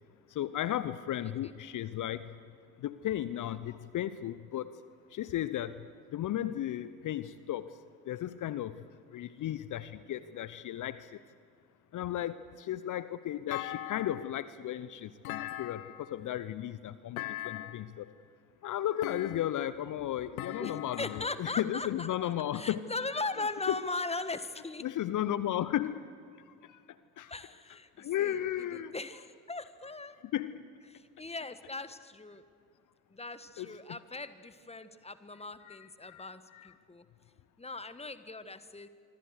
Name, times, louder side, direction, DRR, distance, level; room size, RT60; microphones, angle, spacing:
voice 1, 0.3-2.3 2.8-4.7 5.1-5.9 6.1-7.7 8.1-8.8 9.1-11.2 11.9-18.1 18.6-22.9 23.7-23.8 24.8-26.1 26.6-26.8 27.2-27.3 28.0-28.9 30.3-30.6 33.6-33.7 35.7-36.3 36.5-36.7, left 12 dB, 45° left, 15 dB, 0.9 m, -35 dB
Thump thud, 13.5-14.4 15.2-16.2 17.2-17.9 19.0-19.7 20.4-21.4, left 14 dB, 75° left, 1.1 m, -40 dB
voice 2, 20.5-22.2 22.5-24.9 27.3-30.2 30.9-32.4 33.1-37.1 37.6-38.9, left 3 dB, 15° left, 12 dB, 1.6 m, -39 dB
26.0 x 25.0 x 6.6 m, 2.3 s
figure-of-eight pair, 55°, 43 cm